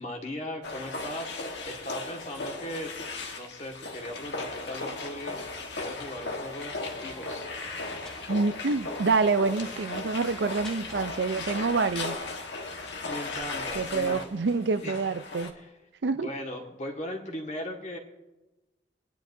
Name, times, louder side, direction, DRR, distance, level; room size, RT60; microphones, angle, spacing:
voice 1, 0.0-2.9 3.3-5.4 5.7-7.5 12.6-14.2 14.8-15.0 15.5-15.7 16.2-18.0, left 1 dB, 40° left, 1.7 m, -38 dB
sound 1, 0.6-15.5, left 3 dB, 85° left, 1.4 m, -37 dB
sound 2, 7.0-12.2, equal, 5° left, 1.2 m, -48 dB
voice 2, 8.3-12.2 13.7-15.5 16.0-16.3, right 4 dB, 90° right, 0.5 m, -27 dB
24.0 x 10.0 x 2.7 m
head